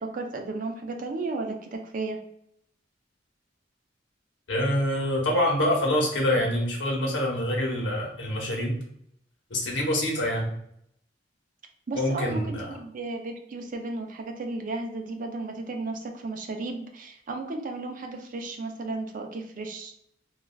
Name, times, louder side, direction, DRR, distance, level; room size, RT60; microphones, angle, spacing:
voice 1, 0.0-2.2 11.9-19.9, right 3 dB, 45° right, 4 dB, 0.4 m, -34 dB
voice 2, 4.5-8.7 9.5-10.5 11.9-12.8, left 1 dB, 85° left, -2 dB, 0.9 m, -26 dB
3.2 x 2.4 x 2.3 m, 0.73 s
head